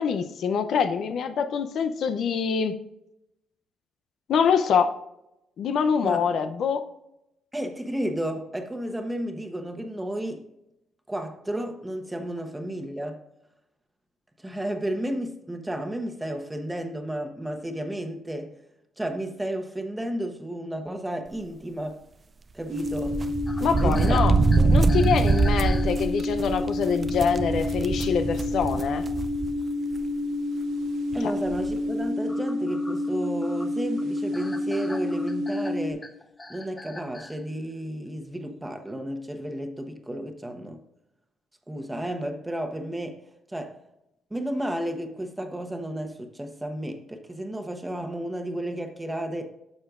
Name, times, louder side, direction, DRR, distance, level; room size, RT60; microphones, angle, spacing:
voice 1, 0.0-2.8 4.3-4.9 5.6-6.8 23.6-24.3 24.7-29.0, left 6 dB, 70° left, 0.6 m, -25 dB
voice 2, 7.5-10.5 11.1-13.2 14.4-18.5 19.0-22.0 22.5-23.2 23.8-24.7 31.1-36.1 36.5-40.8 41.7-43.2 43.5-43.8 44.3-49.5, right 1 dB, 10° right, 1.1 m, -32 dB
sound 1, 22.7-35.9, left 2 dB, 80° right, 1.5 m, -29 dB
sound 2, 22.9-29.6 29.9-30.0 31.1-31.2 31.5-31.7, right 4 dB, 35° right, 0.5 m, -24 dB
sound 3, 23.5-26.4 27.2-27.3 27.6-27.8 28.3-28.4 28.7-29.2 29.8-29.9 30.2-30.3 31.1-31.2 31.6-37.4, left 2 dB, 20° left, 0.9 m, -43 dB
10.5 x 6.5 x 2.5 m
cardioid pair, 90°, 0 cm